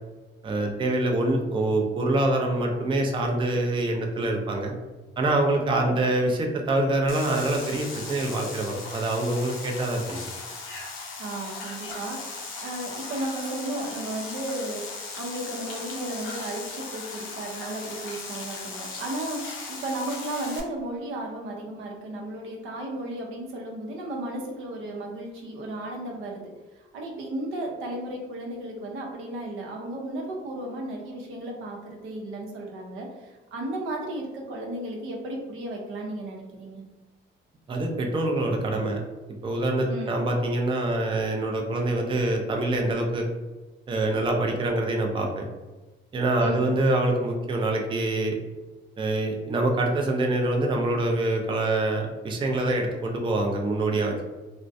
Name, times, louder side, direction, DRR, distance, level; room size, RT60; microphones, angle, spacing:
voice 1, 0.4-4.7 5.2-10.3 37.7-39.0 39.4-43.3 43.9-45.4 46.1-48.3 49.0-54.2, right 2 dB, 25° right, 2 dB, 0.4 m, -25 dB
sound 1, 7.1-20.6, left 4 dB, 85° left, 0.6 m, -38 dB
voice 2, 11.2-26.4 26.7-36.8 39.9-40.2 46.4-46.7, right 1 dB, 85° right, 0 dB, 0.6 m, -34 dB
2.3 x 2.1 x 2.6 m, 1.2 s
cardioid pair, 90°, 20 cm